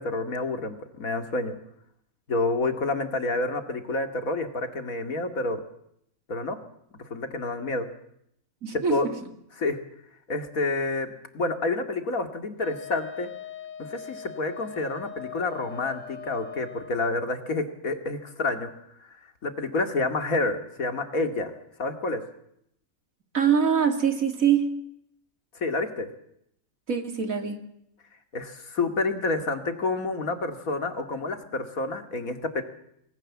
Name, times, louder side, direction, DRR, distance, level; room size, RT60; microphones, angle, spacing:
voice 1, 0.0-1.6 2.3-5.6 6.3-6.6 7.0-7.9 8.7-9.1 9.6-9.8 10.3-13.3 13.8-18.7 19.4-21.5 21.8-22.2 25.6-26.1 28.3-32.6, left 2 dB, 90° left, 7 dB, 2.8 m, -29 dB
voice 2, 8.6-9.1 23.3-24.7 26.9-27.6, right 7 dB, 80° right, 6 dB, 3.1 m, -24 dB
Wind instrument woodwind instrument, 12.6-17.0, left 7 dB, 65° left, 1.7 m, -41 dB
29.0 x 20.5 x 7.4 m, 0.75 s
omnidirectional pair, 1.4 m